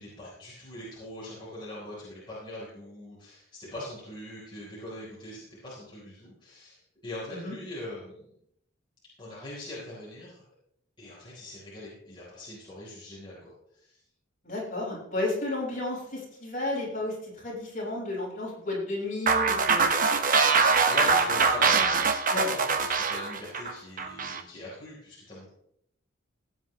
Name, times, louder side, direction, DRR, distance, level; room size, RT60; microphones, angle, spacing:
voice 1, 0.0-8.2 9.2-10.4 11.0-14.0 20.9-21.9 22.2-25.5, left 1 dB, 25° left, -7 dB, 4.1 m, -42 dB
voice 2, 14.4-20.1 21.6-21.9 22.3-22.5, left 2 dB, 45° left, -4 dB, 5.9 m, -33 dB
sound 1, 19.3-24.4, right 4 dB, 45° right, 1.0 m, -23 dB
17.0 x 9.6 x 3.2 m, 0.73 s
head